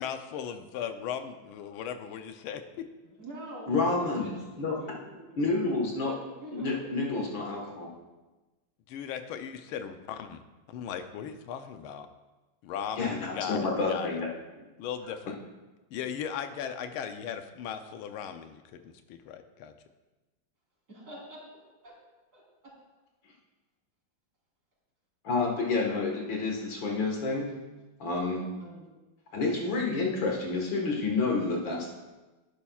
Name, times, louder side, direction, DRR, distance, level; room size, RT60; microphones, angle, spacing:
voice 1, 0.0-2.8 8.9-10.4 10.7-12.1 12.6-14.1 14.8-15.3 15.9-19.7, left 8 dB, 85° left, 8 dB, 1.5 m, -37 dB
voice 2, 3.0-4.3 4.8-5.3 6.1-6.9 20.9-21.4 21.8-21.9 22.3-22.4 28.6-28.8, equal, 50° right, -6 dB, 4.0 m, -44 dB
voice 3, 3.7-4.3 4.6-4.8 5.4-6.1 6.5-7.9 13.0-14.3 14.6-14.7 25.2-27.5 28.0-28.4 29.3-31.9, left 3 dB, 70° left, -1 dB, 2.2 m, -29 dB
11.5 x 9.8 x 2.4 m, 1.2 s
omnidirectional pair, 2.2 m